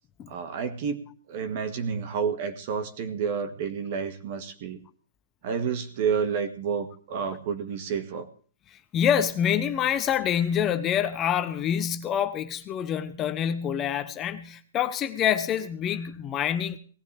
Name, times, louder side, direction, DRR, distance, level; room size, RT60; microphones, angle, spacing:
voice 1, 0.3-4.8 5.4-8.3, right 6 dB, 45° right, 11 dB, 1.9 m, -30 dB
voice 2, 8.9-16.8, left 9 dB, 20° left, 10 dB, 0.9 m, -26 dB
18.0 x 15.5 x 3.4 m, 0.41 s
hypercardioid pair, 145°, 0 cm